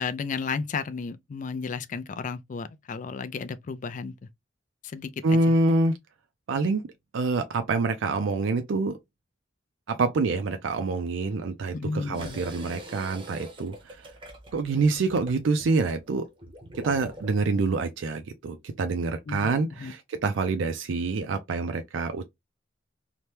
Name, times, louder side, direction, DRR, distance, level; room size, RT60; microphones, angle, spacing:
voice 1, 0.0-4.1 4.9-5.4 11.7-12.4 19.3-19.5 19.8-19.9, left 5 dB, 40° left, 0.3 m, -33 dB
voice 2, 5.2-5.9 6.5-6.8 7.1-9.0 9.9-14.0 14.5-16.3 16.8-22.3, right 3 dB, 75° right, 0.4 m, -26 dB
sound 1, 12.1-17.5, equal, 25° right, 0.7 m, -44 dB
2.9 x 2.1 x 3.2 m
head